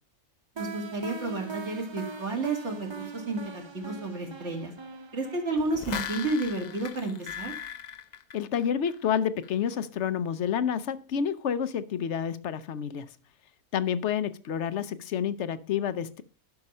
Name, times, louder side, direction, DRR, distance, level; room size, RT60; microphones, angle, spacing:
sound 1, 0.6-7.3, right 4 dB, 35° right, 0.4 m, -42 dB
voice 1, 0.6-4.7 5.1-7.5, right 2 dB, 55° right, 2.6 m, -31 dB
sound 2, 5.6-9.1 9.4-9.5, left 8 dB, 80° left, 0.3 m, -38 dB
voice 2, 8.3-13.1 13.7-16.2, left 8 dB, 60° left, 0.9 m, -29 dB
11.5 x 5.9 x 5.4 m
omnidirectional pair, 1.5 m